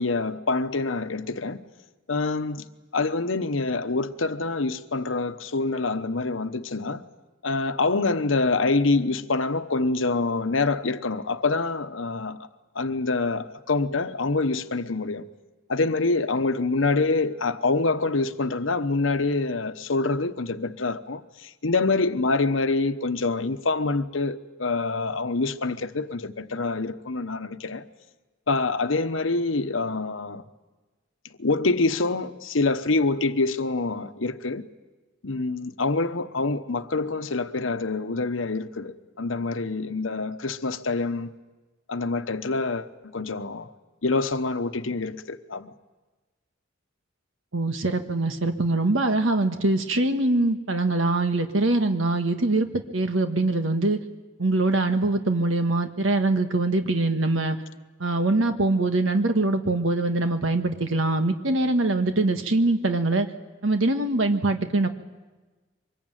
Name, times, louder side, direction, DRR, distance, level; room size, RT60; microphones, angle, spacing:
voice 1, 0.0-1.7 2.1-2.7 2.9-7.0 7.4-12.4 12.7-15.3 15.7-27.9 28.5-30.4 31.4-34.7 35.2-41.3 41.9-43.7 44.0-45.7, left 3 dB, 80° left, 1.1 m, -26 dB
voice 2, 47.5-54.0 54.4-57.6 58.0-63.3 63.6-64.9, right 2 dB, 85° right, 1.5 m, -23 dB
24.5 x 21.5 x 9.2 m
head